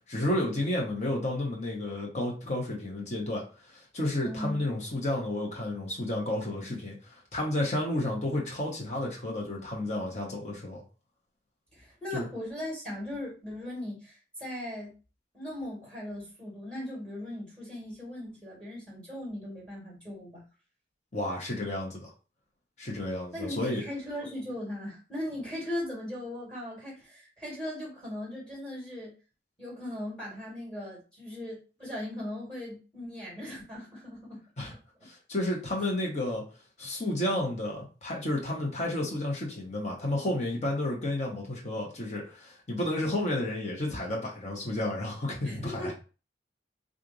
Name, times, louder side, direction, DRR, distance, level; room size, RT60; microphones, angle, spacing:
voice 1, 0.1-10.8 12.1-12.3 21.1-22.1 22.8-23.8 34.6-34.7 35.0-36.5 36.8-45.9, left 1 dB, 40° left, -2 dB, 1.1 m, -31 dB
voice 2, 4.2-4.7 11.7-14.9 15.3-20.4 23.3-29.1 29.6-34.4 45.4-45.9, left 1 dB, 5° left, -4 dB, 1.9 m, -38 dB
3.2 x 2.5 x 3.9 m, 0.34 s
head